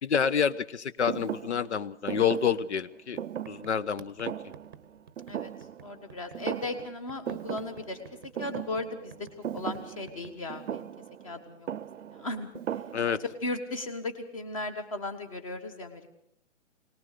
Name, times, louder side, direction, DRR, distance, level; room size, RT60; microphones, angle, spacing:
voice 1, 0.0-3.2 3.5-4.3 12.9-13.2, left 7 dB, 65° left, 16 dB, 1.0 m, -28 dB
Thump thud, 1.1-6.1 6.3-7.0 7.3-13.4, right 9 dB, 80° right, 0.7 m, -38 dB
sound 1, 2.8-2.9 3.1-10.4, right 6 dB, 20° right, 0.9 m, -52 dB
voice 2, 5.8-8.0 8.4-9.3 9.5-10.9 11.2-11.7 12.1-12.5 13.1-16.1, left 2 dB, 30° left, 8 dB, 1.5 m, -36 dB
22.0 x 19.0 x 6.7 m, 0.71 s
hypercardioid pair, 180°, 37 cm